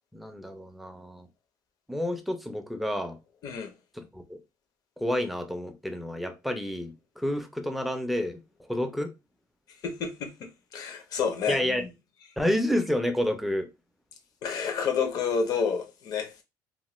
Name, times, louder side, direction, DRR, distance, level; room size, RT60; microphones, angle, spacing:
voice 1, 0.1-1.3 1.9-3.2 4.0-4.4 5.0-8.4 8.7-9.1 11.5-11.8 12.4-13.7, left 1 dB, ahead, 0.4 m, -29 dB
voice 2, 9.8-11.9 14.4-16.4, left 6 dB, 50° left, 0.6 m, -30 dB
3.0 x 2.1 x 3.0 m
cardioid pair, 165°, 8 cm